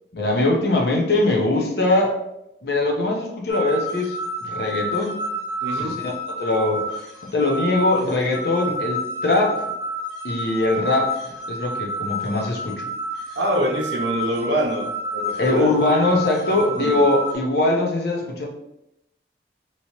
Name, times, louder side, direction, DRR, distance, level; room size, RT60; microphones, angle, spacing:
voice 1, 0.1-2.2 2.6-4.2 4.4-5.2 5.7-6.0 6.4-6.9 7.2-9.6 10.2-11.2 11.5-12.9 15.4-18.5, left 2 dB, 65° left, -1 dB, 0.8 m, -21 dB
sound 1, 3.5-17.3, equal, 5° left, 1.3 m, -30 dB
voice 2, 5.6-6.0 8.6-8.8 13.4-15.8 16.5-17.0, right 1 dB, 85° right, 2 dB, 0.6 m, -25 dB
3.0 x 2.9 x 2.9 m, 0.85 s
head